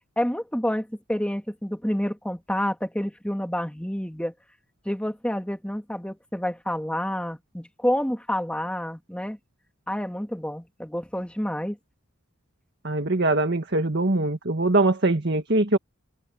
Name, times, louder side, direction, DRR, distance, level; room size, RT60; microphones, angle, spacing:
voice 1, 0.2-4.3 4.9-9.4 9.9-11.8, equal, 5° left, 2.3 m, -28 dB
voice 2, 12.8-15.8, right 2 dB, 55° right, 1.9 m, -22 dB
head